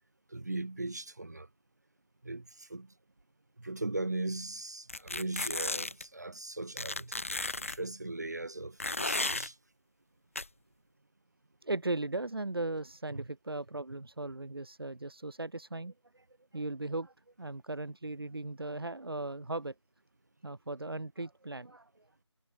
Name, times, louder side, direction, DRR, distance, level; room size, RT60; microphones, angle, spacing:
voice 1, 0.3-1.5 2.2-2.9 3.6-7.2 7.6-9.6, right 2 dB, 35° right, 1.0 m, -38 dB
sound 1, 4.9-6.0 6.8-7.8 8.8-9.5 10.4-10.5, left 2 dB, 25° left, 1.0 m, -34 dB
voice 2, 11.6-16.3 16.5-19.8 20.4-22.1, right 2 dB, 50° right, 5.2 m, -37 dB
figure-of-eight pair, 175°, 16 cm